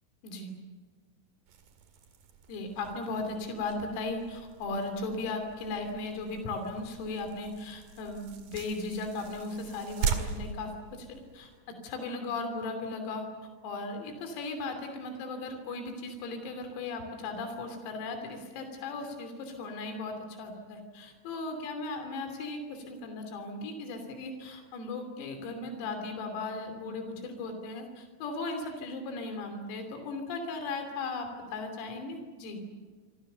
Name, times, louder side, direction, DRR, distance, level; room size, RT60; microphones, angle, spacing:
sound 1, 1.5-11.6, right 6 dB, 50° right, 2.9 m, -40 dB
voice 1, 2.5-11.5 11.8-13.3 13.6-32.6, left 3 dB, 85° left, 6 dB, 5.7 m, -37 dB
27.0 x 25.5 x 6.9 m, 1.5 s
omnidirectional pair, 6.0 m